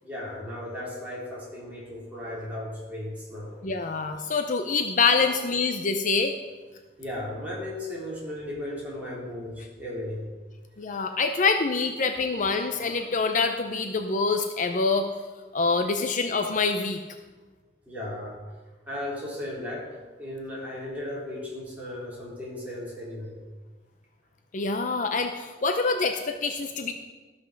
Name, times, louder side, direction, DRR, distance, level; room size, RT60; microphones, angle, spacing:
voice 1, 0.0-3.6 5.2-5.5 7.0-10.2 17.9-18.4 18.9-23.4, left 1 dB, 10° right, -6 dB, 3.8 m, -36 dB
voice 2, 3.6-6.3 10.8-15.1 15.5-17.0 24.5-26.9, left 4 dB, 45° left, 6 dB, 0.6 m, -25 dB
13.5 x 6.0 x 6.3 m, 1.3 s
head